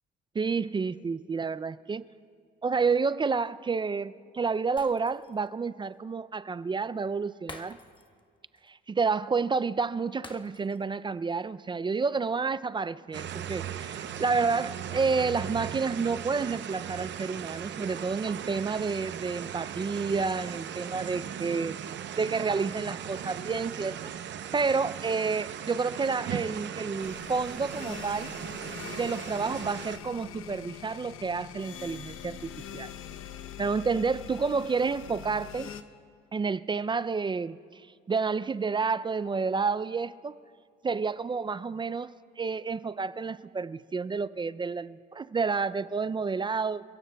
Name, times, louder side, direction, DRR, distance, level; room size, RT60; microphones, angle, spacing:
voice 1, 0.3-2.1 2.6-7.8 8.7-21.8 22.2-24.1 24.5-28.3 29.0-32.9 33.6-35.7 36.3-37.8 38.1-40.4 40.8-46.8, right 4 dB, 20° right, 0.3 m, -30 dB
Shatter, 4.8-5.5 5.8-5.9 7.5-8.2 8.5-8.7 10.2-10.9 11.3-11.4, left 2 dB, 25° left, 1.1 m, -48 dB
sound 1, 13.1-30.0, right 9 dB, 60° right, 0.7 m, -38 dB
sound 2, 27.0-35.8, left 9 dB, 80° left, 0.8 m, -43 dB
29.0 x 16.0 x 2.3 m
cardioid pair, 95°, 21 cm